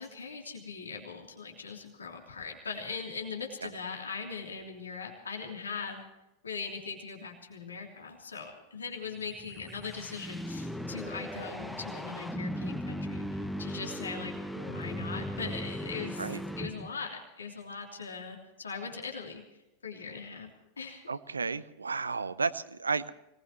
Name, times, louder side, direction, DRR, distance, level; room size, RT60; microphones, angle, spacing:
voice 1, 0.0-6.0 6.4-16.3 16.6-19.4 19.8-20.5 20.8-21.0, left 5 dB, 75° left, 1 dB, 3.1 m, -40 dB
sound 1, 9.3-17.1, equal, 5° left, 1.2 m, -38 dB
voice 2, 21.1-23.1, right 4 dB, 75° right, 17 dB, 0.7 m, -32 dB
24.5 x 19.5 x 3.1 m, 0.94 s
figure-of-eight pair, 90°, 0 cm